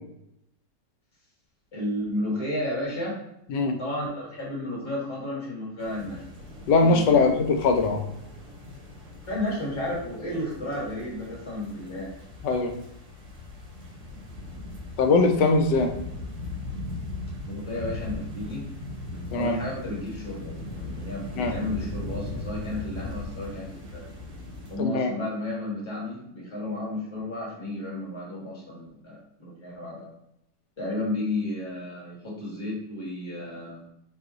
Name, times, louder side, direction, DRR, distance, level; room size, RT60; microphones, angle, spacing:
voice 1, 1.7-3.2 3.8-6.2 6.8-7.2 9.2-12.1 17.4-18.6 19.1-24.0 24.7-30.1 30.8-33.8, left 1 dB, 15° left, -5 dB, 1.3 m, -32 dB
sound 1, 5.8-24.8, left 2 dB, 85° right, 1.8 m, -39 dB
voice 2, 6.7-8.0 12.4-12.7 15.0-15.9 19.3-19.6 21.4-21.5 24.8-25.1, left 3 dB, 75° left, 5 dB, 1.2 m, -21 dB
4.1 x 2.4 x 3.8 m, 0.78 s
omnidirectional pair, 1.9 m